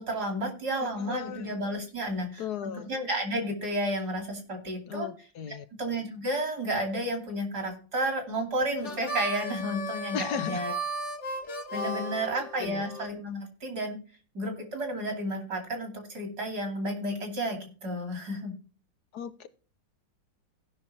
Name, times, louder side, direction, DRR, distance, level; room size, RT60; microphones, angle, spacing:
voice 1, 0.0-5.1 5.5-10.8 11.7-14.0 14.3-18.5, right 1 dB, 55° right, 3 dB, 3.3 m, -32 dB
voice 2, 1.0-1.6 2.4-2.9 4.9-5.6 10.1-10.6 12.3-12.9 19.1-19.5, left 8 dB, 65° left, 11 dB, 1.1 m, -36 dB
Harmonica, 8.8-13.1, equal, 45° left, 1.2 m, -35 dB
16.0 x 6.0 x 4.1 m, 0.37 s
omnidirectional pair, 2.1 m